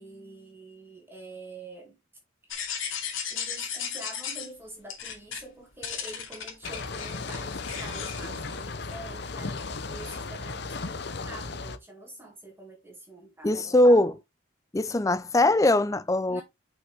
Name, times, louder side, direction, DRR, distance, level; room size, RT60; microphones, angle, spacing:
voice 1, 0.0-2.0 2.5-2.8 3.3-14.1 16.3-16.4, right 2 dB, 10° right, 2.4 m, -46 dB
sound 1, 2.5-4.5 4.9-5.4 5.8-9.2 9.6-10.2, left 7 dB, 75° left, 2.5 m, -36 dB
sound 2, 6.6-11.8, left 3 dB, 55° left, 0.7 m, -36 dB
voice 2, 13.4-14.1 14.7-16.4, left 1 dB, 15° left, 0.4 m, -21 dB
6.3 x 6.2 x 3.5 m
head